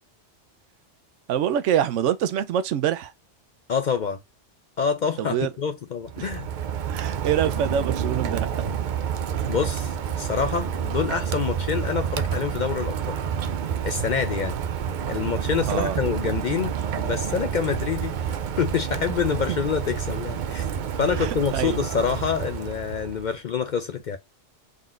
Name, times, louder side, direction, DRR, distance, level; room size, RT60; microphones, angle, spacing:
voice 1, 1.3-3.1 5.2-5.5 6.2-6.3 6.9-8.7 15.6-16.0 19.5-19.6 21.2-21.8, right 9 dB, 90° right, 0.9 m, -25 dB
voice 2, 3.7-4.2 4.8-6.5 9.5-13.2 13.8-14.6 15.1-20.6 21.0-24.2, left 6 dB, 60° left, 0.5 m, -27 dB
Rain, 6.0-23.3, right 8 dB, 55° right, 0.5 m, -29 dB
4.0 x 3.8 x 2.4 m
omnidirectional pair, 1.2 m